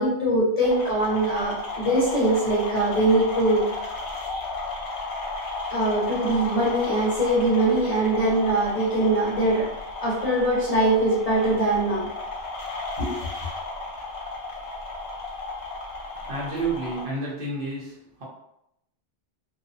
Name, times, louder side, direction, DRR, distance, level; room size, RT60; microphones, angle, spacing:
voice 1, 0.0-3.7 5.7-9.7 10.0-12.1 13.0-13.1, right 1 dB, 40° left, -7 dB, 0.8 m, -22 dB
sound 1, 0.6-17.0, left 2 dB, 65° left, 0.9 m, -34 dB
voice 2, 16.2-18.2, right 3 dB, 55° right, -5 dB, 0.9 m, -30 dB
2.6 x 2.1 x 2.6 m, 0.79 s
omnidirectional pair, 1.1 m